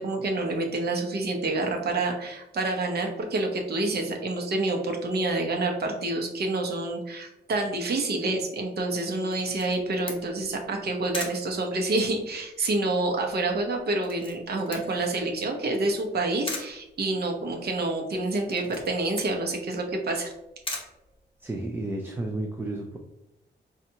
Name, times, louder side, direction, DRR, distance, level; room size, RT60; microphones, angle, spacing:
voice 1, 0.0-20.3, right 2 dB, 60° right, 2 dB, 0.8 m, -28 dB
Camera, 9.3-21.8, left 2 dB, 30° left, 0.9 m, -42 dB
voice 2, 21.4-23.0, right 2 dB, 10° right, 1 dB, 0.4 m, -32 dB
5.3 x 2.5 x 2.8 m, 0.95 s
wide cardioid pair, 130°, 19 cm